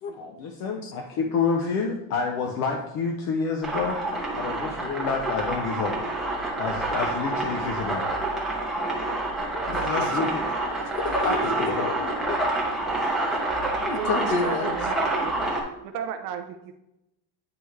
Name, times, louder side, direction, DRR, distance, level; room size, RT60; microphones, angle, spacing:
voice 1, 0.2-4.0 4.4-5.9 6.6-8.0 10.0-10.4 11.2-11.9, left 5 dB, 35° left, 2 dB, 0.4 m, -28 dB
sound 1, 3.6-15.6, right 2 dB, ahead, 0.7 m, -28 dB
voice 2, 9.7-10.3 11.0-12.6 13.8-14.8, left 4 dB, 60° left, 5 dB, 1.1 m, -30 dB
voice 3, 13.9-15.4 15.8-16.7, right 8 dB, 45° right, 8 dB, 0.5 m, -34 dB
9.5 x 3.4 x 3.1 m, 0.88 s
cardioid pair, 175°, 49 cm